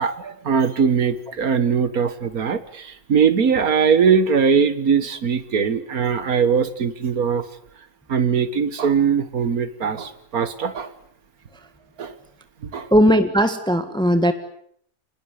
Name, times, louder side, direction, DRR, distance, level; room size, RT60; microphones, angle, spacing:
voice 1, 0.0-7.4 8.1-10.9 12.0-12.1 12.7-12.9, right 6 dB, 85° right, 13 dB, 2.1 m, -20 dB
voice 2, 12.9-14.3, equal, 5° left, 9 dB, 1.6 m, -17 dB
27.0 x 20.0 x 9.7 m, 0.68 s
omnidirectional pair, 1.5 m